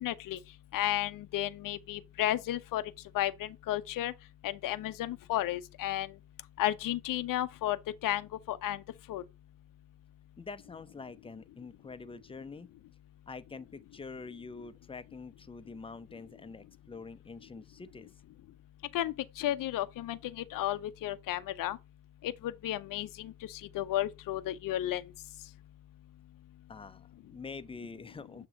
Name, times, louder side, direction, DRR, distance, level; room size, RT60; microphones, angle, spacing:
voice 1, 0.0-0.4 0.7-2.8 3.1-4.1 4.4-6.1 6.6-7.8 8.0-8.8 9.1-9.2 18.9-21.8 22.2-25.0, left 13 dB, 50° left, 0.6 m, -33 dB
voice 2, 10.4-12.7 13.3-18.1 26.7-28.5, left 4 dB, 15° left, 0.6 m, -46 dB
6.8 x 3.0 x 5.1 m
hypercardioid pair, 50°, 43 cm